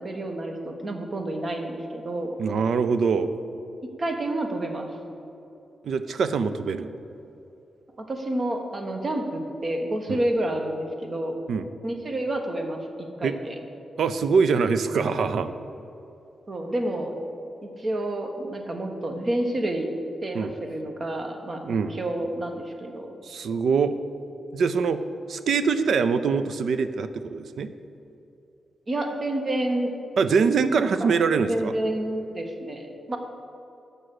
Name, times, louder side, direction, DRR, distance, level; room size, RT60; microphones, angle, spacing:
voice 1, 0.0-2.4 4.0-4.9 8.0-11.4 11.8-13.6 16.5-17.1 17.6-19.9 20.2-23.1 28.9-29.9 31.0-31.1 31.5-33.2, right 1 dB, 50° right, 4 dB, 1.3 m, -29 dB
voice 2, 2.4-3.3 5.8-6.9 10.1-10.2 11.5-11.7 13.2-13.3 14.0-15.5 20.3-20.5 21.6-21.9 23.2-23.9 24.5-25.0 25.3-27.7 30.2-31.7, right 5 dB, 75° right, 11 dB, 0.4 m, -23 dB
6.8 x 6.2 x 7.7 m, 2.7 s
supercardioid pair, 40°, 0 cm